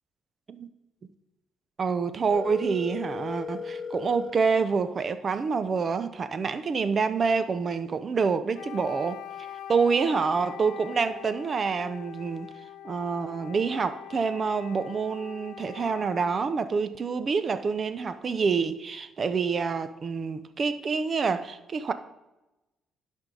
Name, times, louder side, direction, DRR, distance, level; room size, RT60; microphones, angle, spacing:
voice 1, 1.8-9.2 9.7-12.5 12.8-21.9, right 5 dB, 45° right, 0.6 m, -27 dB
Telephone, 2.3-4.3, left 5 dB, 45° left, 1.5 m, -36 dB
Wind instrument woodwind instrument, 8.5-16.6, left 10 dB, 80° left, 0.5 m, -43 dB
11.0 x 5.5 x 3.9 m
cardioid pair, 90°, 0 cm